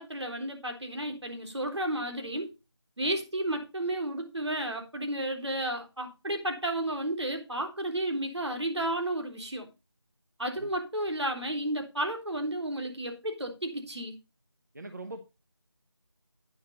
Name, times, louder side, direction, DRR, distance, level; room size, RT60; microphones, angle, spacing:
voice 1, 0.0-2.5 3.0-9.7 10.4-14.2, right 1 dB, 80° right, 3.7 m, -32 dB
voice 2, 14.7-15.2, right 2 dB, 40° right, 0.9 m, -41 dB
9.9 x 5.6 x 5.3 m
figure-of-eight pair, 175°, 14 cm